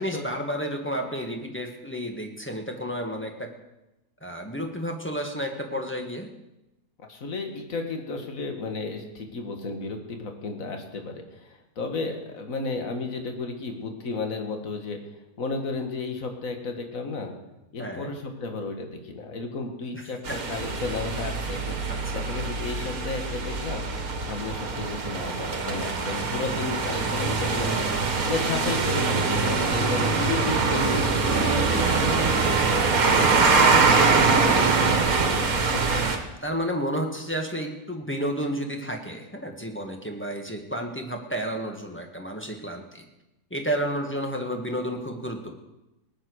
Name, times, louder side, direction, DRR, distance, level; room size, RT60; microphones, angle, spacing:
voice 1, 0.0-3.5 4.2-6.3 17.8-18.1 19.9-20.4 21.9-22.2 25.4-26.3 27.6-28.0 36.4-43.0 43.5-45.5, equal, 10° left, 2 dB, 1.6 m, -31 dB
voice 2, 7.0-15.0 15.4-17.3 17.7-23.8 24.2-27.7 28.3-32.8 33.4-35.8, left 3 dB, 60° left, 4 dB, 2.1 m, -33 dB
sound 1, 20.2-36.2, right 4 dB, 65° right, 1.9 m, -23 dB
18.5 x 9.0 x 6.4 m, 0.96 s
omnidirectional pair, 1.6 m